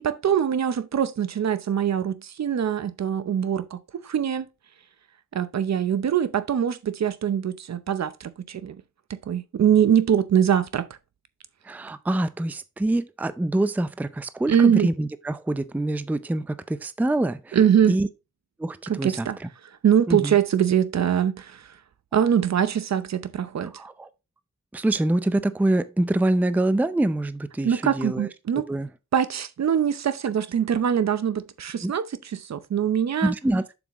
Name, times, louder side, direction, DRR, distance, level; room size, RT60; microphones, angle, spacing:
voice 1, 0.0-4.5 5.3-8.8 9.1-10.9 14.5-14.9 17.5-18.0 18.9-19.4 19.8-21.7 22.1-23.7 27.6-28.7 29.1-32.1 32.3-33.3, right 8 dB, 60° right, 0.7 m, -23 dB
voice 2, 11.6-17.6 17.9-18.1 18.6-19.5 20.1-20.4 23.7-24.1 24.7-28.3 28.7-28.9 31.8-31.9 33.2-33.6, right 1 dB, 5° right, 0.5 m, -25 dB
7.4 x 6.2 x 3.0 m
wide cardioid pair, 100°, 31 cm